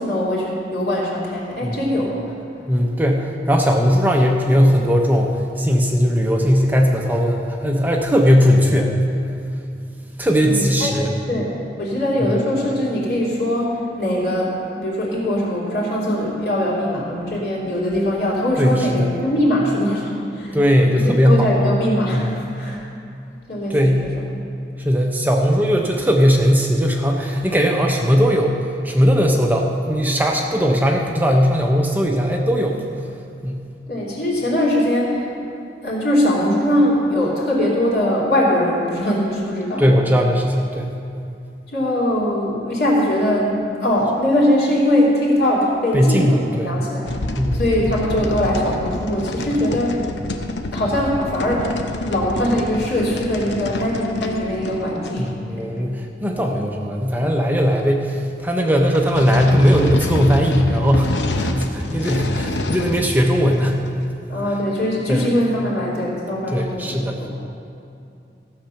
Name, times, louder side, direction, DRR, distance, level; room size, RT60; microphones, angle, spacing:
voice 1, 0.0-2.4 10.4-11.0 11.3-20.6 21.0-22.8 23.5-23.9 33.9-35.3 35.8-39.9 41.7-47.2 47.5-50.0 50.7-51.7 52.0-55.6 64.3-67.3, left 1 dB, 60° left, -5 dB, 2.9 m, -21 dB
voice 2, 2.7-9.0 10.2-11.1 12.2-12.3 18.6-19.1 20.5-21.5 22.1-22.3 23.7-24.1 24.8-28.5 28.8-32.8 33.4-33.6 39.8-40.9 45.9-46.7 47.4-47.6 55.2-63.8 65.1-65.2 66.5-67.3, equal, 10° right, 1 dB, 0.7 m, -18 dB
sound 1, 47.1-55.3 58.9-63.1 63.5-64.1, left 1 dB, 85° left, 0.7 m, -27 dB
15.0 x 6.6 x 5.7 m, 2.6 s
head